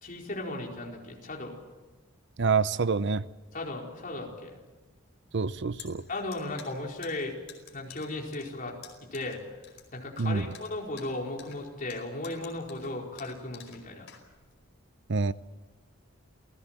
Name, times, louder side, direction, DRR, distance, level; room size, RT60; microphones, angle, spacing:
voice 1, 0.0-1.6 3.5-4.6 6.1-7.4 7.7-8.7 9.0-9.4 9.9-14.1, left 2 dB, 40° left, 4.5 m, -36 dB
voice 2, 2.4-3.2 5.3-6.0 10.2-10.5 15.1-15.3, right 4 dB, 60° right, 0.7 m, -26 dB
sound 1, 5.4-14.7, left 9 dB, 65° left, 4.9 m, -51 dB
28.5 x 17.5 x 7.7 m
head